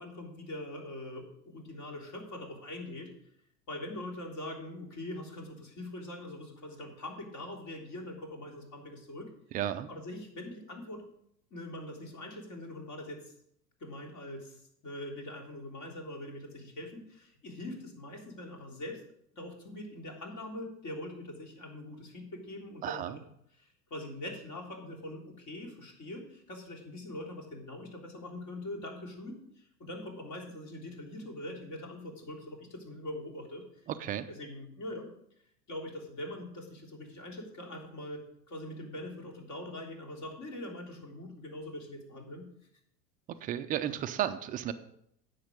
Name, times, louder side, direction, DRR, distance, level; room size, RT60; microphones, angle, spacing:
voice 1, 0.0-3.1 3.7-9.3 9.9-11.1 11.5-13.3 13.8-19.0 19.3-23.0 23.6-33.6 34.4-35.1 35.7-42.5, left 1 dB, 40° left, 1 dB, 3.5 m, -43 dB
voice 2, 9.5-9.9 22.8-23.2 33.9-34.3 43.4-44.7, right 11 dB, 20° right, 10 dB, 0.3 m, -33 dB
10.5 x 8.1 x 5.2 m, 0.73 s
hypercardioid pair, 90°, 49 cm